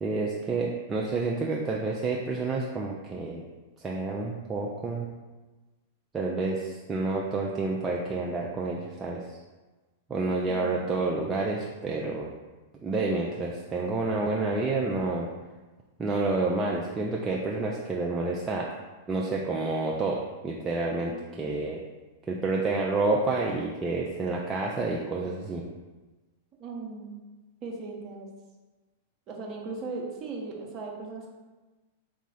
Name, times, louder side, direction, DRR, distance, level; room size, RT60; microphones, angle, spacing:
voice 1, 0.0-3.4 3.8-5.1 6.1-9.2 10.1-12.3 12.8-15.3 16.0-18.7 19.1-21.1 21.4-21.8 22.3-25.6, right 3 dB, 20° right, -2 dB, 0.4 m, -29 dB
voice 2, 10.5-10.8 21.1-21.5 26.6-27.2 27.6-28.3 29.3-31.3, right 3 dB, 35° right, -1 dB, 0.8 m, -38 dB
4.1 x 2.4 x 3.8 m, 1.2 s
figure-of-eight pair, 100°, 0 cm